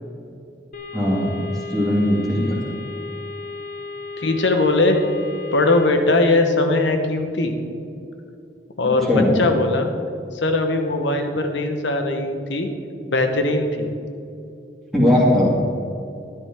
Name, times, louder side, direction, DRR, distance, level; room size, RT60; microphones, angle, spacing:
sound 1, 0.7-5.9, left 4 dB, 45° left, 1.0 m, -34 dB
voice 1, 0.9-1.3 1.7-2.6 9.1-9.3 14.9-15.5, left 1 dB, ahead, -7 dB, 2.5 m, -18 dB
voice 2, 4.2-5.0 5.5-7.5 8.8-9.1 9.4-9.9 10.3-12.7 13.1-13.9, left 2 dB, 90° left, 5 dB, 1.2 m, -20 dB
13.0 x 10.5 x 3.7 m, 2.6 s
head